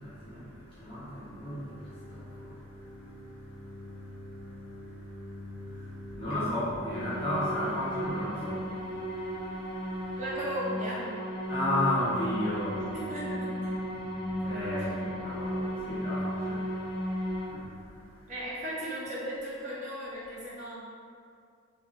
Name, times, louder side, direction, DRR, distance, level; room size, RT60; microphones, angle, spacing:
voice 1, 0.0-10.2 11.5-12.9 14.4-18.3, left 1 dB, 25° left, -12 dB, 0.9 m, -35 dB
sound 1, 0.7-18.3, left 1 dB, 75° left, 0.4 m, -48 dB
sound 2, 6.9-17.5, equal, 80° right, 1.1 m, -35 dB
voice 2, 10.2-11.0 12.9-13.8 18.3-20.7, equal, 35° right, -8 dB, 0.6 m, -36 dB
2.9 x 2.4 x 2.3 m, 2.3 s
head